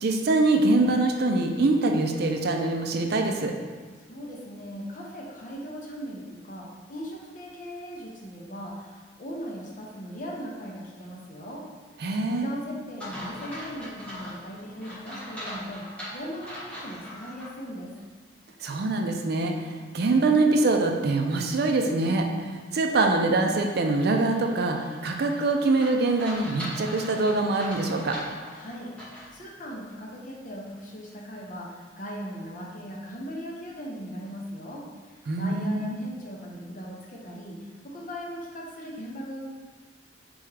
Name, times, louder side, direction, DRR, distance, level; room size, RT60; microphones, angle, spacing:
voice 1, 0.0-3.5 12.0-12.5 18.6-19.5 19.9-22.3 22.7-24.8 25.0-28.2 35.3-36.0, right 2 dB, 60° right, 3 dB, 0.4 m, -24 dB
voice 2, 4.1-11.6 12.3-15.8 16.1-17.9 28.5-34.9 35.4-37.6 37.8-39.4, equal, 45° left, -2 dB, 0.8 m, -39 dB
sound 1, 13.0-17.5 18.0-18.1 23.0-29.3, equal, 5° left, 1.2 m, -41 dB
4.2 x 3.5 x 3.3 m, 1.4 s
head